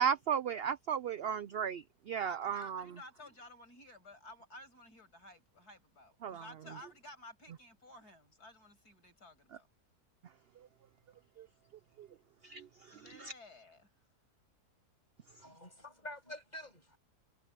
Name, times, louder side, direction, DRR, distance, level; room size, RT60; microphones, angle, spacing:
voice 1, 0.0-2.8 6.2-6.4 11.4-11.5 12.0-12.1 12.4-13.3, right 8 dB, 75° right, 0.5 m, -35 dB
voice 2, 2.2-9.7 12.9-13.9, left 1 dB, 85° left, 7.8 m, -54 dB
voice 3, 15.4-17.0, left 1 dB, 25° left, 8.3 m, -48 dB
omnidirectional pair, 1.6 m